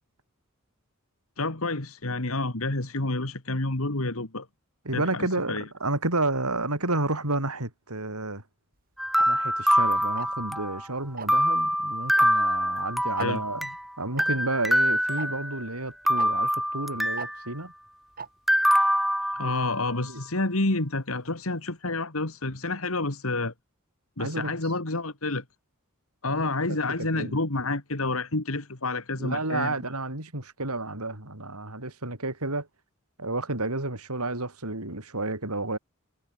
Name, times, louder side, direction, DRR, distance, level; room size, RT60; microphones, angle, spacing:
voice 1, 1.4-4.5 4.9-5.6 13.2-13.4 19.3-23.5 24.2-25.4 26.2-29.7, left 2 dB, 70° left, 2.4 m, -29 dB
voice 2, 4.9-8.4 9.3-13.7 14.0-17.7 19.4-19.5 20.1-20.2 24.2-24.5 26.3-27.4 29.2-32.7 33.2-35.8, right 2 dB, 90° right, 7.1 m, -31 dB
sound 1, 9.0-10.9 11.3-13.8 14.2-15.7 16.1-17.4 18.5-19.9, equal, ahead, 7.4 m, -25 dB
Tick-tock, 9.2-9.3 10.2-10.5 11.2-11.4 12.2-12.3 12.6-12.7 13.2-13.3 14.2-14.3 15.2-15.3 16.2-16.3 17.2-17.3 18.2-18.3, right 5 dB, 40° right, 4.8 m, -36 dB
head